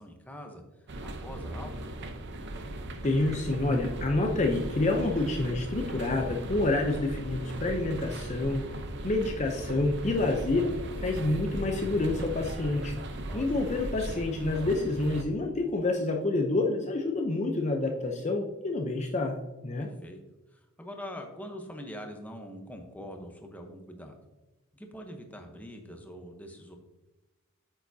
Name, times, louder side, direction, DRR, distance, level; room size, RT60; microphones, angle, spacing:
voice 1, 0.0-1.7 13.3-13.6 19.8-20.2 20.5-24.2 24.7-26.8, equal, 5° left, 3 dB, 0.9 m, -44 dB
sound 1, 0.9-15.2, right 1 dB, 50° right, 0.7 m, -38 dB
voice 2, 3.0-8.6 9.0-13.0 13.3-19.4 19.6-19.9, left 2 dB, 30° left, 2 dB, 0.6 m, -28 dB
8.7 x 6.9 x 2.7 m, 1.1 s
head